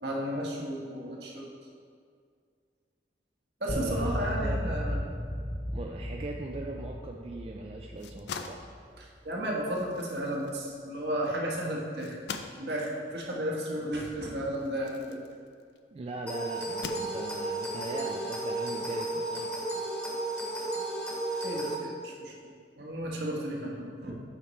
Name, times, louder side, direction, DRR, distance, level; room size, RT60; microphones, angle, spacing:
voice 1, 0.0-1.4 3.6-5.0 9.2-12.2 12.6-15.2 21.3-22.5 22.8-24.1, equal, 70° right, -3 dB, 1.3 m, -33 dB
sound 1, 3.7-9.0, equal, 25° left, 0.5 m, -35 dB
voice 2, 3.7-4.6 4.9-5.2 5.7-8.7 15.9-19.5, right 2 dB, 35° right, 1 dB, 0.3 m, -40 dB
sound 2, 7.8-15.9 16.5-17.6, left 5 dB, 75° left, 0.4 m, -45 dB
sound 3, 16.3-21.7, right 2 dB, 10° left, 1.2 m, -33 dB
8.7 x 6.0 x 3.2 m, 2.2 s
head